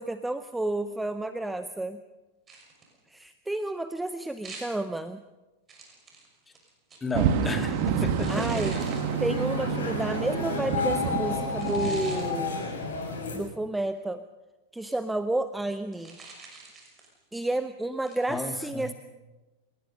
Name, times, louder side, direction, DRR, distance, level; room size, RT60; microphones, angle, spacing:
voice 1, 0.0-2.0 3.1-5.2 8.3-8.8 9.2-12.7 13.3-14.2 14.7-16.2 17.3-18.9, right 2 dB, 5° right, 12 dB, 0.7 m, -31 dB
sound 1, 2.5-3.0 4.4-4.9 5.7-7.2 8.2-9.1 10.1-10.3 11.6-12.3 15.9-17.2 18.1-18.3, right 3 dB, 20° right, 6.0 m, -45 dB
voice 2, 7.0-8.9 18.3-18.9, left 3 dB, 15° left, 7 dB, 2.1 m, -34 dB
sound 2, 7.1-12.8, right 7 dB, 45° right, 2.1 m, -29 dB
sound 3, 8.2-13.4, left 4 dB, 65° left, 6.7 m, -32 dB
27.5 x 18.5 x 5.6 m, 1.1 s
figure-of-eight pair, 90°, 0 cm